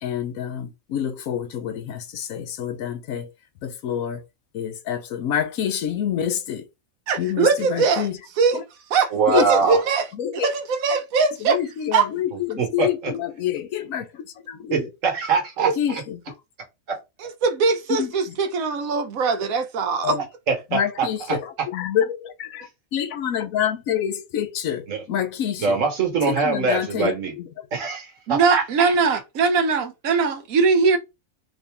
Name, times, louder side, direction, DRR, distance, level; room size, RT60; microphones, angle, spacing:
voice 1, 0.0-3.3 3.6-4.2 4.5-6.6 7.2-8.2 8.5-8.6 9.3-9.5 10.2-10.5 11.4-14.9 15.8-16.3 18.0-18.4 20.0-20.2 20.7-21.4 21.7-22.6 22.9-25.8 26.3-27.5, left 9 dB, 80° left, 1.1 m, -27 dB
voice 2, 7.1-8.1 8.4-8.6 8.9-10.1 10.3-11.6 11.9-12.1 17.2-20.1 28.3-31.0, right 5 dB, 90° right, 1.2 m, -21 dB
voice 3, 9.1-9.8 12.3-13.1 14.7-16.0 16.9-17.0 19.4-19.5 20.5-21.4 24.9-25.0 25.6-27.3 27.7-28.9, right 5 dB, 70° right, 1.5 m, -23 dB
3.8 x 2.7 x 3.4 m
omnidirectional pair, 1.4 m